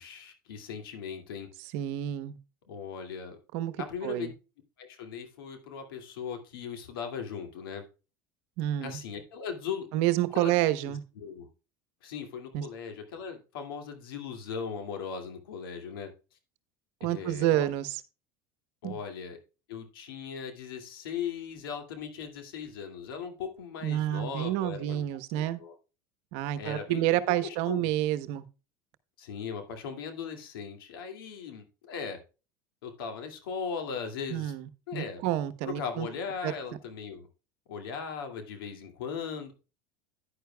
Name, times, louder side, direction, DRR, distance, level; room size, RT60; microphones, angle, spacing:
voice 1, 0.0-1.5 2.7-3.4 3.8-4.3 4.8-7.8 8.8-9.9 10.3-11.5 12.0-16.1 17.0-17.7 18.8-19.4 19.7-25.0 25.3-25.8 26.6-27.9 29.2-32.2 32.8-34.5 34.9-35.2 35.6-37.3 37.7-39.5, left 6 dB, 85° left, 2.3 m, -38 dB
voice 2, 1.7-2.4 3.5-3.7 4.0-4.3 8.6-9.0 9.9-11.0 12.5-12.6 17.0-17.9 18.8-19.0 23.8-25.6 26.3-28.4 34.3-36.1 36.4-36.5, right 14 dB, 65° right, 1.0 m, -29 dB
10.5 x 10.0 x 2.3 m
supercardioid pair, 100°, 12 cm